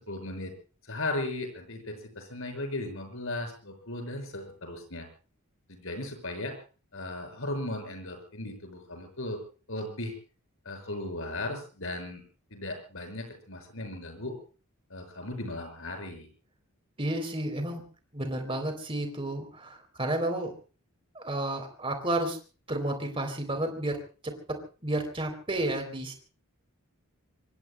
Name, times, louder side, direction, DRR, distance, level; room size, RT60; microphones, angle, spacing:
voice 1, 0.1-0.5 0.9-5.1 5.7-6.5 6.9-9.4 9.7-10.2 10.6-12.2 12.5-14.3 14.9-16.3, left 2 dB, 65° left, 5 dB, 6.0 m, -36 dB
voice 2, 17.0-17.8 18.1-20.6 21.2-22.4 22.7-26.1, right 1 dB, 25° right, 5 dB, 3.3 m, -31 dB
26.0 x 24.5 x 2.2 m, 0.36 s
head